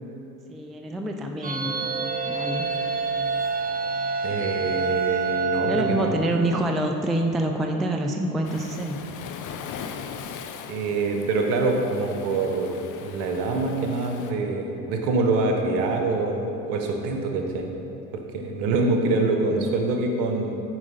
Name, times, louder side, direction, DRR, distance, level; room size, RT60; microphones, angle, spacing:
voice 1, 0.5-2.7 5.6-9.1 19.1-19.3, right 1 dB, ahead, 3 dB, 0.3 m, -27 dB
sound 1, 1.4-6.8, right 4 dB, 20° right, 0.7 m, -28 dB
voice 2, 4.2-6.1 10.7-17.7 18.1-20.6, right 3 dB, 60° right, 3 dB, 1.3 m, -25 dB
Waves surf, 8.4-14.3, left 7 dB, 40° left, 0.7 m, -39 dB
9.5 x 4.9 x 5.2 m, 3.0 s
hypercardioid pair, 65°, 47 cm